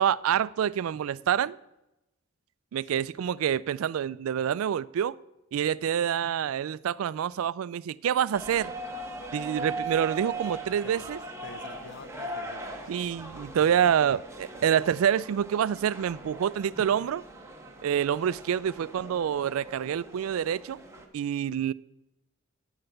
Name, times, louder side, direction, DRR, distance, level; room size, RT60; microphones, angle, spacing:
voice 1, 0.0-1.6 2.7-5.2 5.5-8.7 9.3-11.2 12.9-17.2 17.8-20.8 21.1-21.7, right 9 dB, 80° right, 0.3 m, -27 dB
sound 1, 8.3-21.1, right 2 dB, 15° right, 1.0 m, -40 dB
voice 2, 10.6-11.1 11.4-12.8, left 4 dB, 55° left, 0.6 m, -47 dB
9.6 x 5.6 x 7.8 m
head